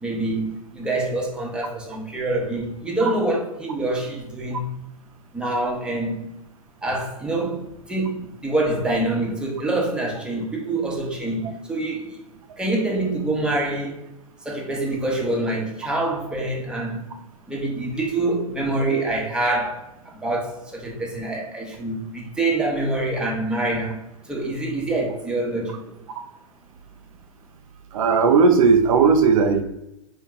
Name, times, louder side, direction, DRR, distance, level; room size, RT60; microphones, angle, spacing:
voice 1, 0.0-4.8 5.3-6.3 6.8-12.2 12.6-14.0 14.4-17.0 17.5-24.0 24.3-25.9, right 2 dB, 5° right, 0.9 m, -26 dB
voice 2, 27.9-29.6, right 5 dB, 65° right, 0.5 m, -16 dB
4.1 x 2.3 x 3.6 m
hypercardioid pair, 105°, 19 cm